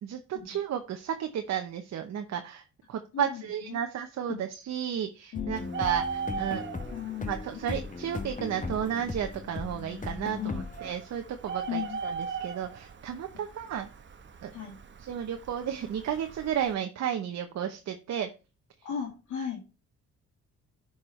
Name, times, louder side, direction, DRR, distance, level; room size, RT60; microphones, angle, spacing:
voice 1, 0.0-2.6 2.9-6.6 7.3-13.9 14.4-14.5 15.0-18.3, right 9 dB, 60° right, 6 dB, 0.9 m, -33 dB
voice 2, 5.3-5.8 6.9-7.6 10.4-10.7 11.7-12.0 13.3-13.4 14.5-14.8 18.8-19.6, left 8 dB, 75° left, -3 dB, 2.2 m, -36 dB
sound 1, 5.3-10.9, left 3 dB, 25° left, 1.0 m, -38 dB
Bird, 5.6-16.7, right 5 dB, 40° right, 1.0 m, -40 dB
11.0 x 4.7 x 3.2 m, 0.31 s
cardioid pair, 90°, 30 cm